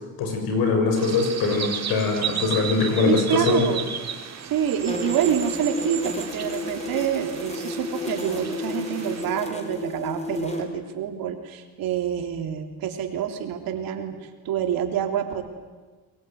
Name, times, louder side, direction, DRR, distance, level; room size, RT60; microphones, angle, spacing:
voice 1, 0.2-3.6, left 4 dB, 85° left, 4 dB, 6.8 m, -22 dB
sound 1, 1.0-9.2, right 8 dB, 45° right, 3.3 m, -34 dB
voice 2, 3.0-3.8 4.5-15.4, right 9 dB, 75° right, 4 dB, 3.5 m, -27 dB
sound 2, 4.9-10.6, left 2 dB, 20° left, 5.4 m, -32 dB
24.5 x 21.0 x 9.5 m, 1.3 s
cardioid pair, 95°, 36 cm